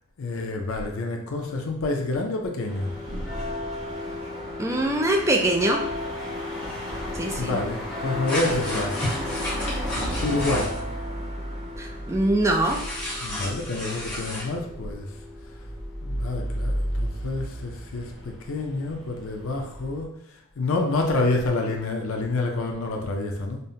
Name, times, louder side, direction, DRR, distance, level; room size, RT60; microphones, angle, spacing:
voice 1, 0.2-2.9 7.4-9.0 10.2-10.7 13.2-15.1 16.0-20.1 20.6-23.6, left 2 dB, 75° left, 2 dB, 0.5 m, -28 dB
sound 1, 2.7-20.1, left 1 dB, 60° right, 0.9 m, -33 dB
voice 2, 4.6-5.8 7.2-7.6 11.8-12.8, right 1 dB, 15° right, 2 dB, 0.3 m, -23 dB
sound 2, 8.3-10.8 12.6-14.5, left 1 dB, 5° left, 1.0 m, -32 dB
5.2 x 2.1 x 2.7 m, 0.75 s
head